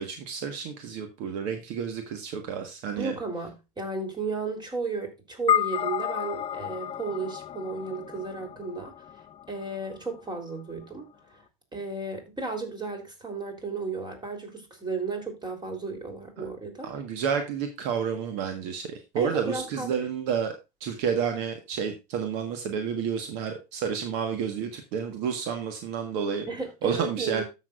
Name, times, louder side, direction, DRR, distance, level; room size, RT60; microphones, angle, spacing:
voice 1, 0.0-3.2 16.4-16.5 16.8-20.5 20.8-26.5 26.8-27.4, right 7 dB, 65° right, 1.6 m, -30 dB
voice 2, 3.0-8.9 9.5-11.0 11.3-11.4 11.7-16.9 19.2-19.9 26.5-27.4, right 4 dB, 20° right, 3.7 m, -34 dB
sound 1, 5.5-10.0, left 10 dB, 30° left, 0.5 m, -31 dB
13.5 x 6.6 x 2.5 m
hypercardioid pair, 80°, 20 cm